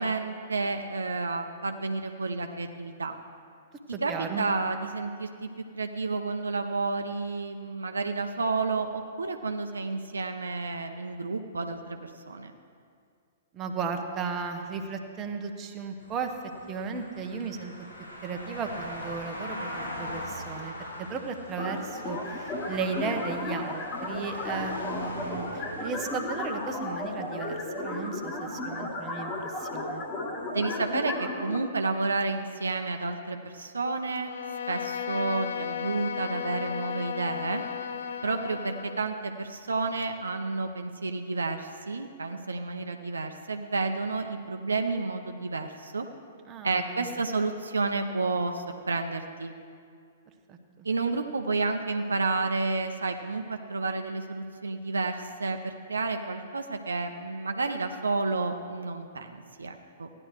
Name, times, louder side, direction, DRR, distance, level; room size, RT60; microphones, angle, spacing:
voice 1, 0.0-3.1 4.0-5.5 5.7-12.5 30.5-34.3 34.7-37.6 38.2-46.1 46.6-49.5 50.8-60.1, right 3 dB, 75° right, 5 dB, 0.6 m, -30 dB
voice 2, 3.9-4.5 13.5-16.3 16.7-17.7 18.2-30.1 46.5-47.2 50.5-50.9, right 5 dB, 25° right, 4 dB, 0.9 m, -35 dB
sound 1, 16.0-30.5 30.9-31.0, left 1 dB, 85° left, 3.3 m, -42 dB
sound 2, 21.6-31.6, left 2 dB, 25° left, 1.6 m, -34 dB
Bowed string instrument, 34.2-39.1, left 8 dB, 60° left, 0.5 m, -35 dB
16.0 x 10.5 x 3.2 m, 2.3 s
figure-of-eight pair, 115°, 0 cm